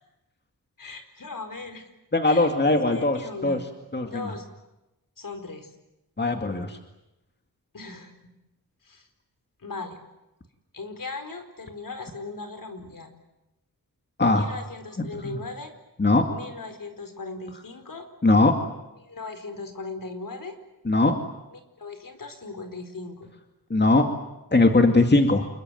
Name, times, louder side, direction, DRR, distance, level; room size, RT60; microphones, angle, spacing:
voice 1, 0.8-1.9 2.2-3.6 4.0-4.5 5.2-5.7 7.7-8.3 8.8-9.1 9.6-10.0 10.7-13.1 14.3-15.7 16.3-18.1 19.1-20.6 21.5-23.3, left 3 dB, 60° left, 8 dB, 4.5 m, -38 dB
voice 2, 2.1-3.6 3.9-4.3 6.2-6.8 14.2-14.5 15.0-15.4 16.0-16.3 18.2-18.5 20.9-21.1 23.7-24.1 24.5-25.5, left 2 dB, 30° left, 5 dB, 2.2 m, -20 dB
28.0 x 22.5 x 9.3 m, 0.94 s
wide cardioid pair, 100°, 37 cm